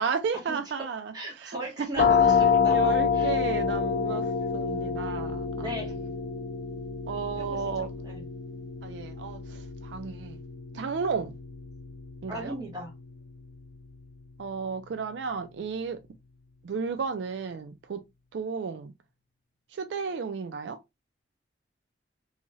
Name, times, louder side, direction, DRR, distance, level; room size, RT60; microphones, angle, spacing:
voice 1, 0.0-2.1 2.5-6.0 7.1-7.9 8.8-10.4 10.7-11.3 12.2-12.6 14.4-16.0 16.6-18.0 18.3-18.9 19.7-20.8, right 5 dB, 75° right, 0.4 m, -33 dB
voice 2, 1.1-3.4 5.6-5.9 7.3-8.2 12.3-12.9, equal, 20° right, 1.2 m, -38 dB
sound 1, 1.9-13.5, left 6 dB, 55° left, 0.4 m, -28 dB
3.0 x 2.8 x 2.2 m
head